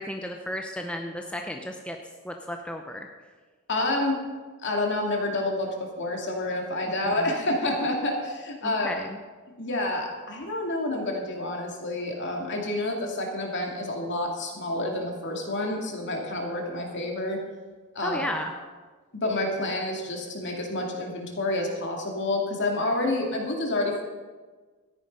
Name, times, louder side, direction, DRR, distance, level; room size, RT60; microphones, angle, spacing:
voice 1, 0.0-2.0 2.2-3.1 7.1-7.3 8.6-9.2 18.0-18.5, left 1 dB, 5° left, 3 dB, 0.7 m, -33 dB
voice 2, 3.7-4.2 4.6-8.9 9.6-17.4 17.9-18.3 19.2-24.0, left 2 dB, 55° left, 1 dB, 2.4 m, -28 dB
13.5 x 10.0 x 5.3 m, 1.4 s
head